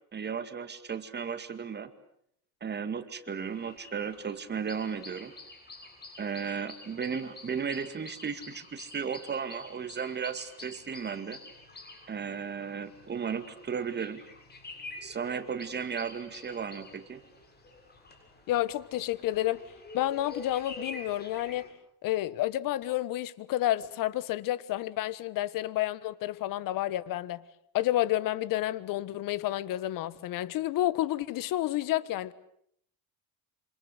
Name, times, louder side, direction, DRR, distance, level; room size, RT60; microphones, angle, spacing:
voice 1, 0.1-1.9 2.6-5.3 6.2-11.4 12.1-14.2 15.0-17.2, right 6 dB, 30° right, 2.2 m, -35 dB
sound 1, 3.4-21.7, left 3 dB, 25° left, 7.0 m, -48 dB
voice 2, 18.5-19.6 19.9-21.7 22.0-27.4 27.7-32.3, left 14 dB, 60° left, 1.4 m, -30 dB
27.0 x 26.5 x 8.2 m
cardioid pair, 125°, 37 cm